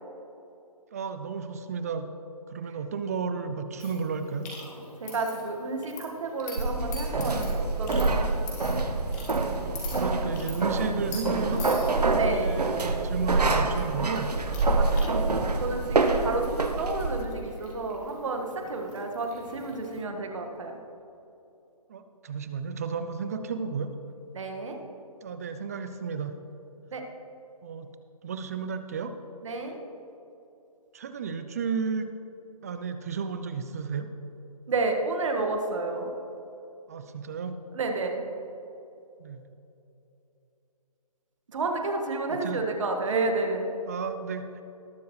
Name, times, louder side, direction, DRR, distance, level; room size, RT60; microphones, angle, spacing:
voice 1, 0.9-2.1 2.5-4.5 9.7-11.9 12.2-14.3 21.9-23.9 25.2-26.3 27.6-27.9 28.2-29.1 30.9-32.1 32.6-34.1 36.9-37.6 39.2-39.4 42.3-42.6 43.9-44.6, right 5 dB, 25° right, 9 dB, 0.5 m, -33 dB
sound 1, 3.8-20.0, left 2 dB, 25° left, 2.8 m, -45 dB
voice 2, 5.0-8.2 12.1-12.6 14.8-20.8 24.3-24.8 26.9-27.0 29.4-29.8 34.7-36.1 37.7-38.2 41.5-43.7, right 3 dB, 50° right, 3 dB, 1.8 m, -31 dB
sound 2, 6.6-17.2, right 3 dB, 85° right, 1.3 m, -26 dB
19.5 x 6.9 x 3.2 m, 2.9 s
figure-of-eight pair, 150°, 20 cm